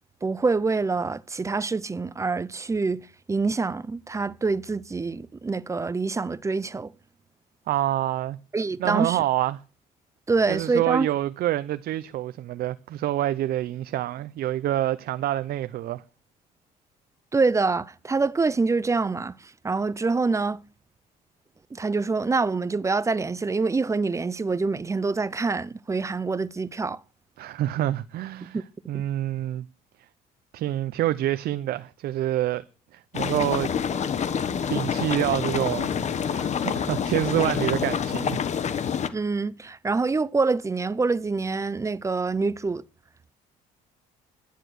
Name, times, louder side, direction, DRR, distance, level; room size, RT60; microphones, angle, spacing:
voice 1, 0.2-6.9 8.5-9.2 10.3-11.1 17.3-20.6 21.7-27.0 28.5-28.6 28.9-29.0 39.1-42.8, right 4 dB, 15° right, 0.5 m, -26 dB
voice 2, 7.7-8.4 8.8-9.6 10.5-16.0 27.4-28.6 28.9-29.7 30.5-32.6 32.9-33.7 34.7-35.9 36.2-38.5, right 13 dB, 65° right, 0.6 m, -27 dB
sound 1, 33.1-39.1, left 7 dB, 45° left, 1.2 m, -27 dB
11.5 x 10.0 x 6.3 m
cardioid pair, 110°, 17 cm